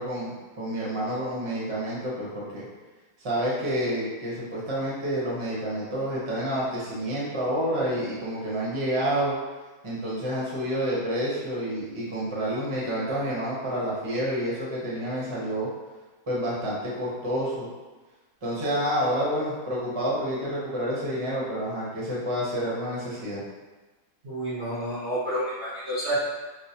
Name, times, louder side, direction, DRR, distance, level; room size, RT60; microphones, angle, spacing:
voice 1, 0.0-2.6 3.2-9.4 9.8-15.7 16.3-17.7 18.4-23.4, equal, 25° right, -7 dB, 0.8 m, -29 dB
voice 2, 24.2-26.2, right 1 dB, 50° right, -9 dB, 0.9 m, -29 dB
5.3 x 2.1 x 2.8 m, 1.3 s
omnidirectional pair, 1.7 m